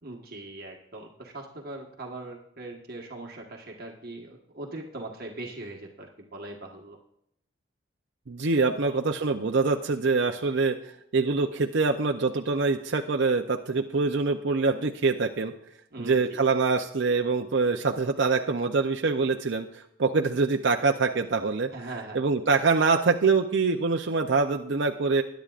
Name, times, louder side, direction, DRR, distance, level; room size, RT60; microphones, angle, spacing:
voice 1, 0.0-7.0 8.6-8.7 15.9-16.4 21.7-22.2, right 2 dB, 50° right, 0 dB, 1.5 m, -40 dB
voice 2, 8.3-15.5 16.0-19.7 20.0-21.7 22.1-25.2, right 4 dB, 65° right, 3 dB, 0.6 m, -24 dB
21.0 x 10.5 x 2.5 m, 0.76 s
head